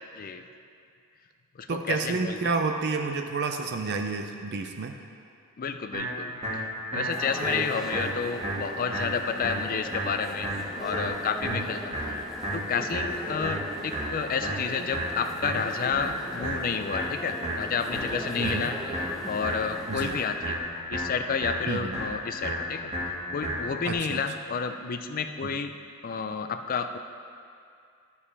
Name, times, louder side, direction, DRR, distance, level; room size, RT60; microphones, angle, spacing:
voice 1, 0.2-0.5 1.6-2.5 5.6-10.5 10.8-12.2 12.5-18.8 19.3-20.6 20.9-22.8 23.3-25.7 26.0-27.0, left 6 dB, 40° left, 8 dB, 0.4 m, -31 dB
voice 2, 1.7-4.9 11.4-11.7 18.4-18.7 19.9-20.1 21.7-22.0 23.9-24.2 25.4-25.5, right 4 dB, 50° right, 5 dB, 0.5 m, -30 dB
sound 1, 5.9-23.9, equal, 30° right, 1.8 m, -33 dB
sound 2, 7.1-20.3, equal, ahead, 0.9 m, -40 dB
12.5 x 7.0 x 3.3 m, 2.4 s
head